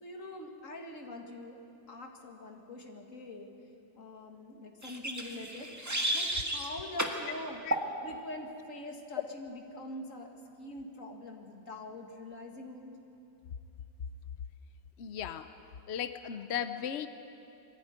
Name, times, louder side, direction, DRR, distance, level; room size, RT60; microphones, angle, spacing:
voice 1, 0.0-1.6 1.9-3.5 3.9-5.7 6.1-7.6 8.0-10.3 10.6-12.9, left 1 dB, 45° left, 2 dB, 2.2 m, -44 dB
sound 1, 4.8-6.7 7.0-7.2 7.7-7.9, right 1 dB, 10° right, 1.4 m, -32 dB
voice 2, 15.0-15.5 15.9-17.1, left 9 dB, 65° left, 10 dB, 0.6 m, -36 dB
22.5 x 14.5 x 9.6 m, 2.8 s
omnidirectional pair, 1.9 m